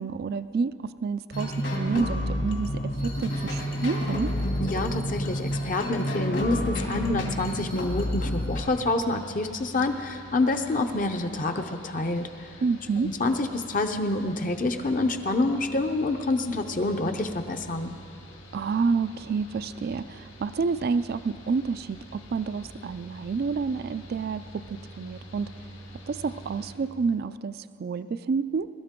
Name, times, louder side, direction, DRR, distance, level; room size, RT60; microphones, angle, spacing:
voice 1, 0.0-4.3 12.6-13.1 18.5-25.5 26.1-28.7, right 5 dB, 50° right, 14 dB, 0.3 m, -29 dB
sound 1, 1.3-8.6, equal, 65° left, 2.4 m, -29 dB
voice 2, 4.6-12.5 13.0-17.9, left 2 dB, 45° left, 6 dB, 0.7 m, -27 dB
Mechanical fan, 8.6-26.7, equal, 85° left, 2.4 m, -46 dB
22.5 x 13.0 x 3.7 m, 2.3 s
head